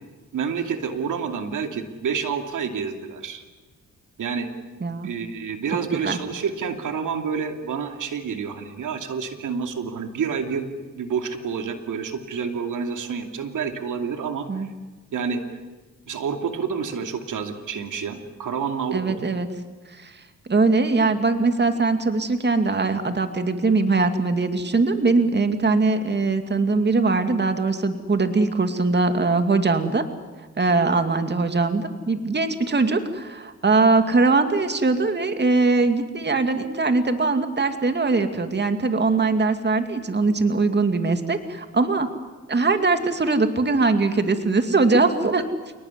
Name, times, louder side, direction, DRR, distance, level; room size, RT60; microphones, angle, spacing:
voice 1, 0.3-3.4 4.2-4.5 5.0-14.7 15.1-15.4 16.1-19.4, right 6 dB, 75° right, 5 dB, 2.8 m, -28 dB
voice 2, 18.9-19.5 19.9-20.2 20.5-30.0 30.6-42.1 42.5-45.4, right 3 dB, 35° right, 7 dB, 2.4 m, -21 dB
29.0 x 19.0 x 9.8 m, 1.3 s
cardioid pair, 75°, 31 cm